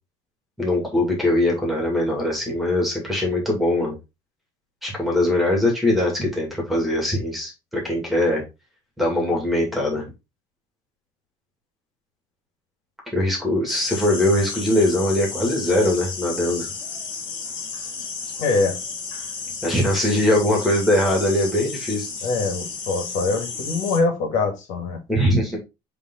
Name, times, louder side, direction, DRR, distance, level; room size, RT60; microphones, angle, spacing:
voice 1, 0.6-4.0 4.8-8.4 9.0-10.0 13.1-16.7 19.6-22.1 25.1-25.6, left 1 dB, ahead, -1 dB, 2.3 m, -21 dB
sound 1, 13.7-24.0, left 5 dB, 40° left, 2.0 m, -33 dB
voice 2, 18.4-18.8 19.8-19.9 20.3-20.4 22.2-25.0, left 3 dB, 75° left, 4 dB, 2.0 m, -24 dB
7.3 x 3.5 x 3.8 m, 0.25 s
cardioid pair, 175°, 12 cm